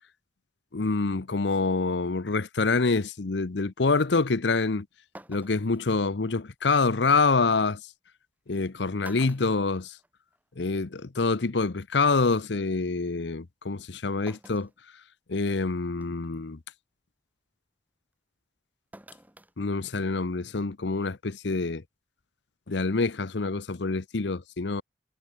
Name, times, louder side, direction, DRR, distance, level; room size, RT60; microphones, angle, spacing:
voice 1, 0.7-4.9 5.3-7.8 8.5-10.0 10.6-14.7 15.3-16.6 19.6-21.8 22.7-24.8, left 3 dB, 70° left, 0.8 m, -26 dB
sound 1, 4.6-4.7 5.1-5.8 7.4-7.5 8.5-8.7 9.0-10.4 10.8-10.9 12.1-12.2 14.3-14.8 15.3-15.4 16.0-16.3 18.9-19.5 19.9-20.0, right 1 dB, 10° right, 1.2 m, -49 dB
head